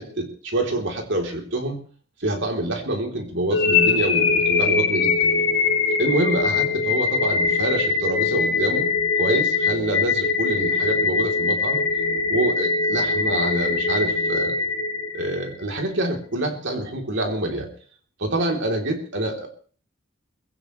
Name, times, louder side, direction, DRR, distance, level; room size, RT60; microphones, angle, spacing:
voice 1, 0.0-1.8 2.2-5.3 6.0-8.9 9.2-11.8 12.3-14.5 15.1-17.7 18.2-19.5, right 1 dB, 65° right, 2 dB, 3.5 m, -26 dB
sound 1, 3.5-15.6, left 4 dB, 70° left, 3.6 m, -22 dB
21.0 x 16.5 x 3.3 m, 0.42 s
head